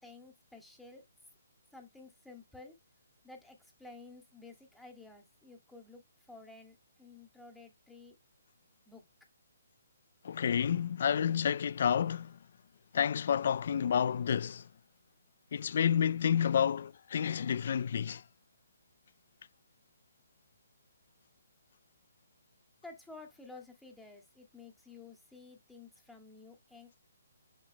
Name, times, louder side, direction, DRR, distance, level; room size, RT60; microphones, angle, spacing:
voice 1, 0.0-1.1 1.7-2.7 3.2-6.0 6.3-8.2 8.9-9.0 22.8-27.0, left 3 dB, 5° left, 2.4 m, -52 dB
voice 2, 10.2-12.3 12.9-14.6 15.5-18.2, left 8 dB, 55° left, 0.4 m, -30 dB
7.4 x 7.3 x 2.2 m
hypercardioid pair, 150°, 0 cm